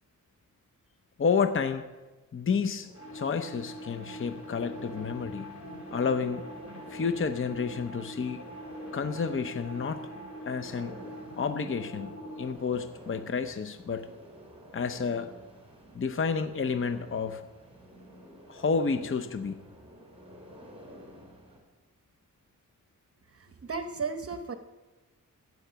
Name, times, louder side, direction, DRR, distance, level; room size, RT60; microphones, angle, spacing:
voice 1, 1.2-1.9 2.3-5.5 5.9-6.5 6.9-8.5 8.9-10.0 10.5-11.0 11.4-12.1 12.4-14.1 14.7-15.3 15.9-17.4 18.5-19.6, left 5 dB, 40° left, 8 dB, 0.7 m, -30 dB
sound 1, 2.7-21.6, equal, 20° right, 3.7 m, -50 dB
sound 2, 2.9-12.5, equal, 65° left, 5.6 m, -43 dB
voice 2, 23.3-24.6, right 4 dB, 50° right, 8 dB, 0.9 m, -35 dB
15.0 x 9.5 x 6.8 m, 1.2 s
wide cardioid pair, 110°, 31 cm